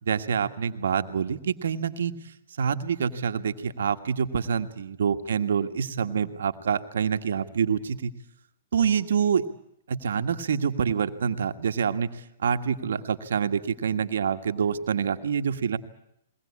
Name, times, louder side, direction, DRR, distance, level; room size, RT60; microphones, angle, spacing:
voice 1, 0.0-2.1 2.6-8.1 8.7-9.4 9.9-15.8, right 7 dB, 80° right, 8 dB, 1.6 m, -26 dB
22.0 x 18.5 x 8.5 m, 0.77 s
hypercardioid pair, 140°, 0 cm